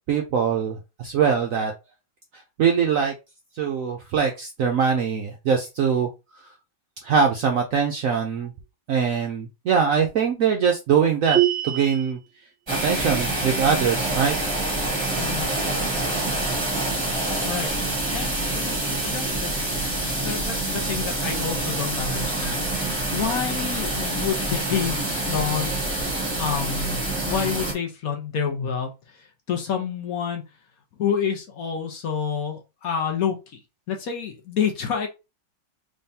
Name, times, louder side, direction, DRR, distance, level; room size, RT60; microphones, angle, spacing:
voice 1, 0.1-1.7 2.6-3.1 3.6-6.1 7.0-8.5 8.9-11.4 11.6-12.2 12.8-14.3, right 6 dB, 70° right, 3 dB, 0.8 m, -22 dB
sound 1, 11.3-12.1, right 13 dB, 45° right, 1.0 m, -23 dB
sound 2, 12.7-27.7, right 2 dB, 15° right, 1.1 m, -26 dB
voice 2, 15.2-15.5 17.5-17.7 18.1-19.8 20.2-25.7 26.4-30.4 31.0-33.6 33.9-35.1, left 7 dB, 60° left, 3 dB, 1.1 m, -28 dB
3.6 x 3.4 x 2.7 m, 0.26 s
omnidirectional pair, 2.0 m